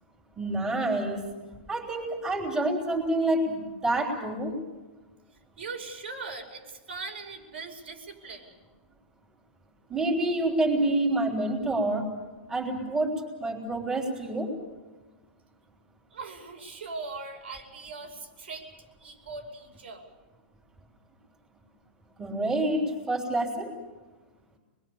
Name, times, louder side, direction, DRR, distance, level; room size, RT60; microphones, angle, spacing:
voice 1, 0.4-1.3 1.7-4.5 9.9-12.2 12.5-14.5 22.2-23.7, right 1 dB, 10° right, -2 dB, 3.5 m, -27 dB
voice 2, 5.6-8.5 16.1-18.7 19.0-20.1, right 4 dB, 90° right, 2 dB, 5.4 m, -40 dB
26.0 x 21.0 x 7.0 m, 1.2 s
hypercardioid pair, 155°, 6 cm